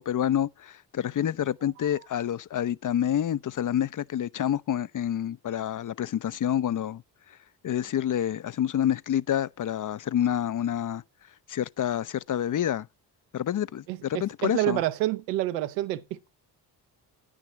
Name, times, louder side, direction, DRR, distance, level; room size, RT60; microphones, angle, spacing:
voice 1, 0.0-7.0 7.6-11.0 11.5-12.9 13.3-14.8, left 10 dB, 40° left, 0.6 m, -28 dB
voice 2, 13.9-16.3, right 15 dB, 85° right, 0.9 m, -28 dB
10.0 x 6.2 x 7.5 m
hypercardioid pair, 40°, 48 cm